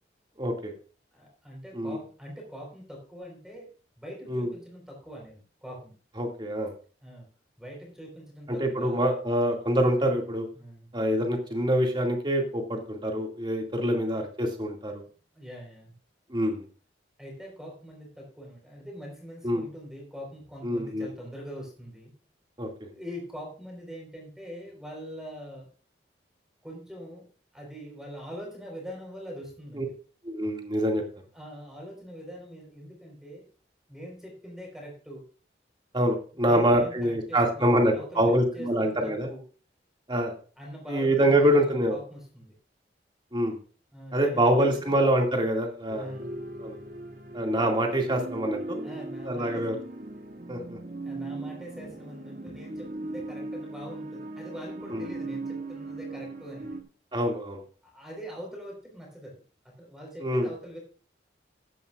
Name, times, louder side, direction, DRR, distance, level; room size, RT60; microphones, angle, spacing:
voice 1, 0.4-0.7 1.7-2.0 4.3-4.5 6.2-6.7 8.6-10.5 10.9-15.0 16.3-16.6 19.4-19.6 20.6-21.1 22.6-22.7 29.7-29.8 30.2-31.0 35.9-39.3 40.1-40.3 40.9-42.0 43.3-43.6 44.1-46.1 46.6-46.8 47.3-48.9 49.2-49.8 50.5-50.8 54.9-55.1 57.1-57.6 60.2-60.5, equal, 25° right, 2 dB, 2.3 m, -25 dB
voice 2, 1.1-5.9 7.0-7.3 7.6-9.0 10.5-10.9 13.8-14.0 15.3-15.9 17.2-22.1 22.9-25.7 26.6-27.3 27.5-30.0 31.3-33.5 33.9-35.2 36.3-39.4 40.6-42.5 43.9-45.0 45.9-46.4 48.8-49.7 51.0-56.8 57.8-59.4 59.6-60.8, equal, 5° right, -1 dB, 4.3 m, -43 dB
sound 1, 45.9-56.8, right 2 dB, 45° right, 1.4 m, -38 dB
15.0 x 10.5 x 2.5 m, 0.39 s
head